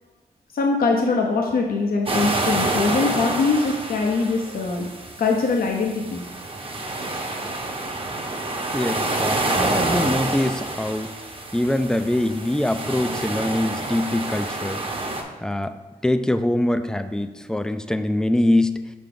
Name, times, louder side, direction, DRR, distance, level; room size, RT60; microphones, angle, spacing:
voice 1, 0.5-4.9 5.2-6.2, left 4 dB, 70° left, 1 dB, 0.7 m, -22 dB
sound 1, 2.1-15.2, right 2 dB, 35° right, 1.1 m, -27 dB
voice 2, 8.7-11.1 11.5-14.8 15.4-15.8 16.0-18.8, left 1 dB, 5° left, 10 dB, 0.4 m, -23 dB
5.7 x 5.2 x 3.6 m, 1.3 s
cardioid pair, 50°, 16 cm